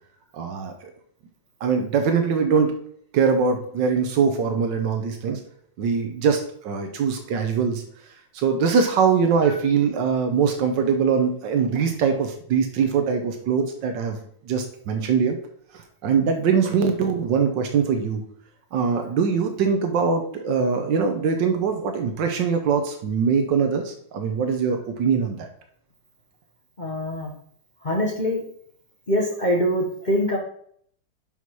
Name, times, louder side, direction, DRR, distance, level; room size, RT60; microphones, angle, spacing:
voice 1, 0.3-0.9 1.6-2.7 3.1-5.4 5.8-7.8 8.3-14.2 14.5-15.4 15.7-18.2 18.7-25.5, right 6 dB, 80° right, 6 dB, 1.5 m, -22 dB
voice 2, 26.8-27.3 27.8-28.4 29.1-30.4, equal, 30° left, -1 dB, 0.9 m, -23 dB
5.9 x 5.6 x 4.6 m, 0.63 s
omnidirectional pair, 2.0 m